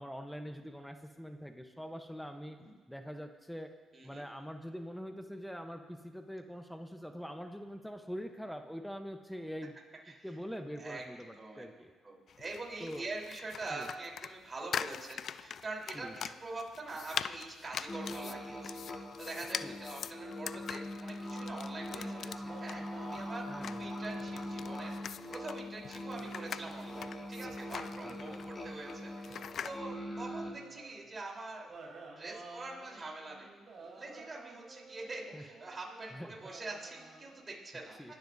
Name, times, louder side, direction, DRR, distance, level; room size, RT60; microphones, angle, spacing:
voice 1, 0.0-2.6 2.9-3.7 4.0-9.7 10.2-11.9 12.8-13.1 13.7-13.9 15.9-16.1 19.6-19.8 23.5-24.0 28.0-28.4 35.3-35.4 36.1-36.3 38.0-38.1, equal, ahead, 6 dB, 0.9 m, -44 dB
voice 2, 3.9-4.2 10.0-10.4 10.8-11.0 11.3-11.6 12.0-31.8 32.2-33.5 33.8-38.1, right 2 dB, 35° right, -1 dB, 3.9 m, -44 dB
sound 1, 12.3-29.8, left 8 dB, 60° left, 0.3 m, -43 dB
sound 2, 17.9-30.5, left 1 dB, 25° left, 2.9 m, -42 dB
sound 3, 21.2-25.5 26.1-31.1 31.7-37.4, right 3 dB, 55° right, 3.5 m, -54 dB
23.0 x 12.0 x 2.7 m, 1.5 s
supercardioid pair, 60°, 0 cm